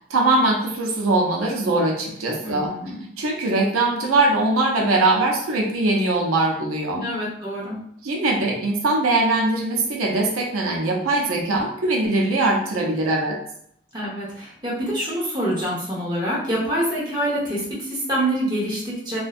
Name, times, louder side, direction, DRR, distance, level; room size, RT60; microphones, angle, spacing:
voice 1, 0.1-2.7 3.2-7.0 8.0-13.4, right 2 dB, 85° right, 0 dB, 0.5 m, -21 dB
voice 2, 2.4-2.9 6.9-7.8 13.9-19.2, right 1 dB, 20° right, -6 dB, 0.7 m, -26 dB
2.5 x 2.1 x 2.4 m, 0.70 s
head